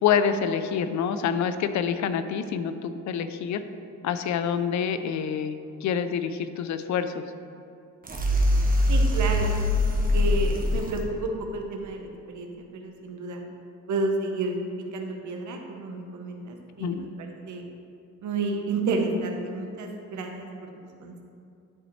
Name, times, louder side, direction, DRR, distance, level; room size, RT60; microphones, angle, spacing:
voice 1, 0.0-3.6 4.0-7.2 16.8-17.1, left 7 dB, 65° left, 10 dB, 0.5 m, -27 dB
sound 1, 8.0-11.0, left 1 dB, 30° right, 1.0 m, -23 dB
voice 2, 8.9-9.6 9.8-13.4 13.9-14.5 14.9-17.6 18.2-21.2, right 3 dB, 70° right, 3 dB, 1.0 m, -31 dB
10.5 x 4.0 x 3.1 m, 2.5 s
cardioid pair, 85°, 30 cm